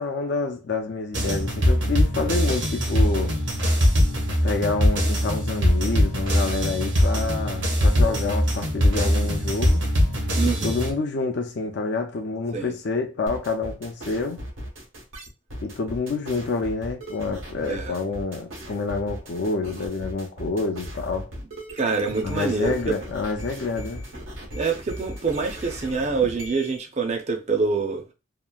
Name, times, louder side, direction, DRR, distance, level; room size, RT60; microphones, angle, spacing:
voice 1, 0.0-3.4 4.4-9.8 10.4-14.4 15.6-21.3 22.2-24.0 26.2-26.3, left 3 dB, 60° left, 0.4 m, -28 dB
sound 1, 1.1-10.9, equal, 65° right, 0.8 m, -22 dB
voice 2, 10.3-10.8 12.5-12.7 17.6-18.0 21.7-22.9 24.5-28.0, right 4 dB, 35° right, 0.4 m, -26 dB
sound 2, 13.3-26.8, equal, 85° right, 1.1 m, -38 dB
2.9 x 2.4 x 2.2 m
head